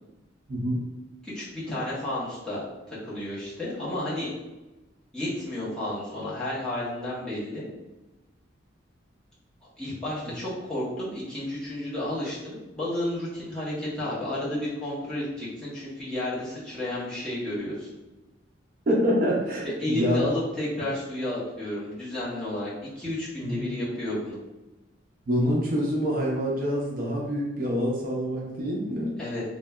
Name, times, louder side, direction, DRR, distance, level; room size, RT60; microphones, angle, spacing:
voice 1, 0.5-0.8 18.9-20.2 23.4-23.6 25.3-29.1, equal, 50° right, -3 dB, 0.5 m, -26 dB
voice 2, 1.2-4.3 5.1-7.6 9.8-17.9 19.6-24.4 29.2-29.4, left 1 dB, 5° left, -10 dB, 0.8 m, -32 dB
3.0 x 2.1 x 2.2 m, 1.1 s
head